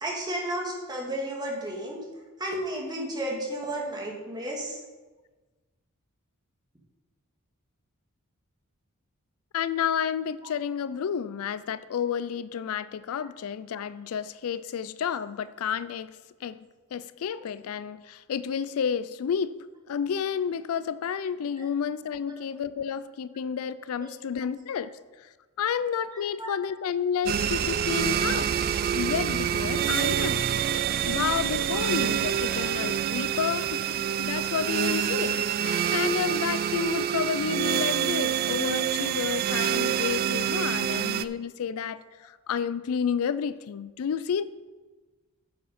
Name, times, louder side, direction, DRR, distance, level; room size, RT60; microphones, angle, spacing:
voice 1, 0.0-2.0 2.4-4.8 22.3-22.4 23.8-24.2 26.1-26.5, right 1 dB, 20° right, -1 dB, 2.0 m, -33 dB
voice 2, 9.5-19.6 19.9-24.9 25.2-25.3 25.6-28.5 28.9-30.5 30.8-44.4, left 7 dB, 70° left, 15 dB, 0.4 m, -31 dB
sound 1, 27.3-41.2, right 9 dB, 45° right, 0.3 m, -27 dB
10.5 x 7.3 x 4.3 m, 1.3 s
head